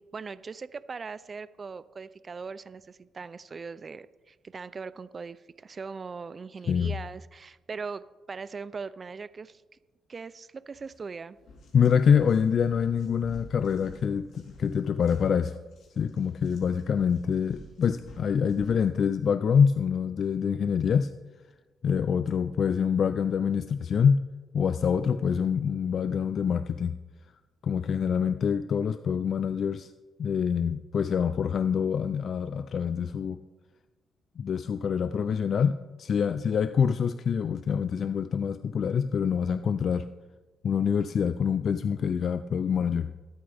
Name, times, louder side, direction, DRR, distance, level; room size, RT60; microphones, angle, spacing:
voice 1, 0.0-9.6 10.1-11.4, right 5 dB, 35° right, 16 dB, 0.5 m, -40 dB
sound 1, 10.7-11.0 11.4-18.9, left 1 dB, 75° left, 3.5 m, -51 dB
voice 2, 11.7-15.6 16.0-21.1 21.8-24.2 24.5-26.9 27.6-29.9 30.2-33.4 34.4-40.1 40.6-43.1, left 7 dB, 55° left, 12 dB, 0.4 m, -26 dB
23.0 x 8.7 x 3.5 m, 1.2 s
cardioid pair, 90°, 0 cm